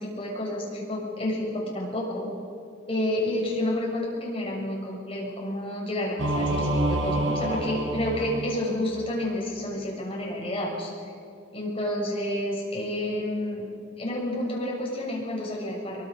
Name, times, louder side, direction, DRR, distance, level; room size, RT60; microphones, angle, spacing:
voice 1, 0.0-2.3 2.9-10.9 11.5-13.7 14.0-16.1, left 1 dB, 30° left, -3 dB, 6.9 m, -30 dB
Singing / Musical instrument, 6.2-9.1, right 1 dB, 85° right, 3.9 m, -28 dB
24.0 x 24.0 x 6.8 m, 2.3 s
head